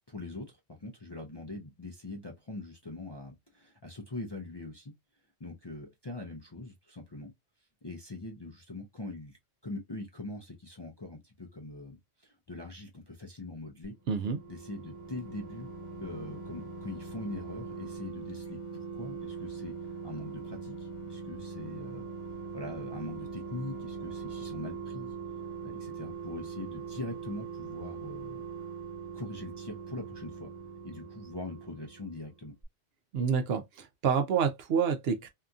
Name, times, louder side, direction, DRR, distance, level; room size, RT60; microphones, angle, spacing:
voice 1, 0.1-4.9 5.4-7.3 7.8-9.4 9.6-13.9 14.5-15.7 16.0-19.7 20.0-22.0 22.5-25.1 25.6-28.4 29.1-30.5 30.8-32.5, left 2 dB, 35° left, 0.4 m, -42 dB
sound 1, 14.0-32.3 32.6-32.7, right 5 dB, 30° right, 1.2 m, -41 dB
voice 2, 14.1-14.4 33.1-35.3, right 6 dB, 70° right, 0.8 m, -28 dB
2.7 x 2.6 x 2.3 m
omnidirectional pair, 1.1 m